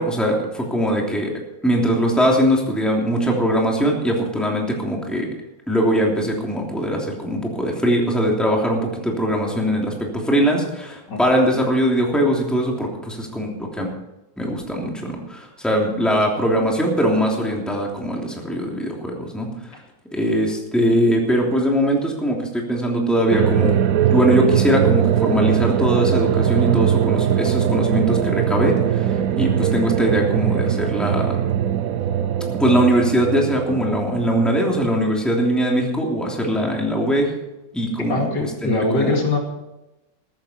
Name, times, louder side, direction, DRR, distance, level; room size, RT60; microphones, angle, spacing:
voice 1, 0.0-1.3 1.6-5.3 5.7-13.9 14.4-19.5 20.1-23.8 24.0-31.4 32.5-37.3 37.7-39.2, equal, ahead, -1 dB, 2.9 m, -21 dB
sound 1, 23.3-35.4, right 9 dB, 65° right, 1.0 m, -21 dB
voice 2, 38.1-39.4, left 2 dB, 70° left, 1 dB, 3.0 m, -22 dB
14.5 x 13.5 x 4.5 m, 0.97 s
omnidirectional pair, 2.0 m